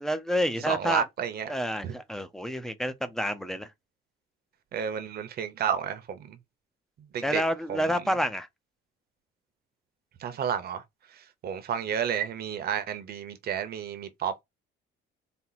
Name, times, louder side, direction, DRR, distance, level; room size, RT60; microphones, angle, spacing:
voice 1, 0.0-1.0 1.5-3.7 7.2-8.5, equal, ahead, 0.5 m, -29 dB
voice 2, 0.7-1.5 1.8-1.9 4.7-6.4 7.1-7.4 7.7-7.8 10.2-10.8 11.4-14.3, right 8 dB, 50° right, 0.8 m, -31 dB
4.4 x 2.1 x 3.9 m
cardioid pair, 145°, 21 cm